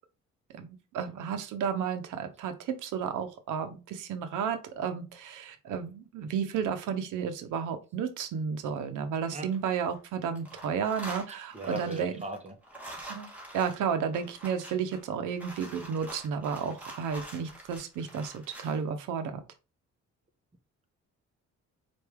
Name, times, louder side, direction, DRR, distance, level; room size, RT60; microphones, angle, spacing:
voice 1, 0.5-12.1 13.1-19.4, right 7 dB, 85° right, 8 dB, 0.8 m, -32 dB
sound 1, 9.5-10.1 10.4-18.8, right 1 dB, 5° right, 1.8 m, -45 dB
voice 2, 11.3-12.6, right 3 dB, 20° right, 6 dB, 1.0 m, -38 dB
4.5 x 2.6 x 3.5 m, 0.31 s
cardioid pair, 90°, 30 cm